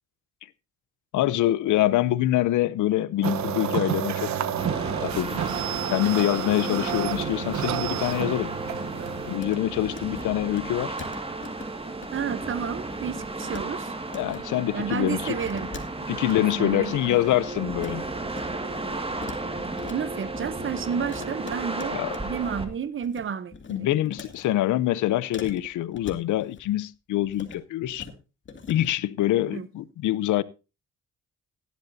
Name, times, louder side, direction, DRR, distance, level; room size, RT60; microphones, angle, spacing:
voice 1, 1.1-4.3 5.0-5.5 5.8-8.5 9.3-11.0 14.1-15.4 16.1-18.0 21.9-22.2 23.7-28.1 28.7-30.4, left 14 dB, 80° left, 0.7 m, -25 dB
sound 1, 3.2-9.4, right 9 dB, 65° right, 1.1 m, -30 dB
sound 2, 4.6-22.7, right 2 dB, 20° right, 2.0 m, -33 dB
sound 3, 9.4-9.6 9.8-10.2 10.6-10.7 11.0-12.1 12.4-12.5 12.9-13.7 14.0-14.4 15.4-16.3 16.8-17.9 18.2-18.6 18.8-20.0 21.1-22.6 22.8-23.2 23.5-24.5 25.3-26.7 27.2-27.6 27.9-28.1 28.4-28.9, left 5 dB, 40° left, 2.3 m, -42 dB
voice 2, 12.1-13.9 14.7-15.7 16.0-16.1 16.4-17.2 19.9-23.9 29.5-29.7, right 7 dB, 40° right, 0.9 m, -31 dB
16.0 x 11.5 x 2.7 m
cardioid pair, 90°, 30 cm